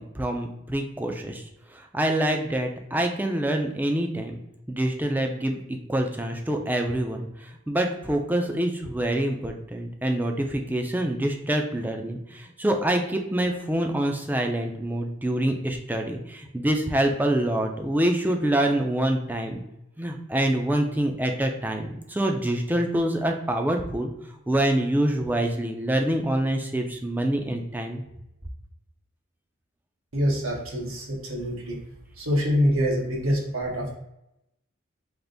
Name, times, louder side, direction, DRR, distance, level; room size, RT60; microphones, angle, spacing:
voice 1, 0.1-1.4 1.7-4.4 4.7-19.6 20.0-24.1 24.5-28.0, right 1 dB, 10° right, 3 dB, 0.4 m, -26 dB
voice 2, 30.1-31.8 32.2-34.0, equal, 90° right, -2 dB, 1.1 m, -25 dB
3.4 x 2.5 x 3.8 m, 0.86 s
head